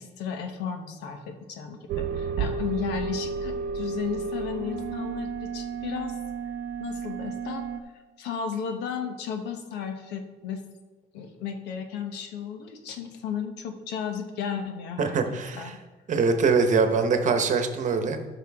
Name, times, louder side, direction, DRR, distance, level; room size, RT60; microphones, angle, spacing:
voice 1, 0.0-6.2 6.8-7.7 8.2-10.6 11.1-15.8, left 7 dB, 90° left, 6 dB, 1.1 m, -34 dB
sound 1, 1.9-7.8, right 5 dB, 70° right, 1.0 m, -32 dB
voice 2, 15.0-15.7 16.1-18.3, right 4 dB, 45° right, 6 dB, 1.1 m, -23 dB
13.0 x 5.8 x 3.6 m, 1.2 s
cardioid pair, 110°, 17 cm